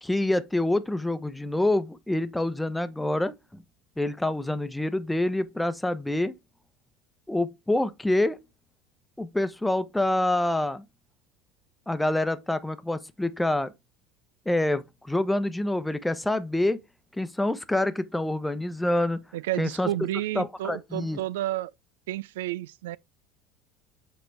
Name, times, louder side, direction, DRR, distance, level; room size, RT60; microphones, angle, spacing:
voice 1, 0.0-3.6 4.0-6.3 7.3-8.4 9.2-10.8 11.9-13.7 14.5-16.8 17.1-19.2 19.6-19.9 20.3-21.2, left 1 dB, 5° left, 0.9 m, -26 dB
voice 2, 19.3-21.7 22.1-23.0, right 15 dB, 75° right, 0.3 m, -31 dB
7.8 x 4.5 x 3.3 m
hypercardioid pair, 75°, 0 cm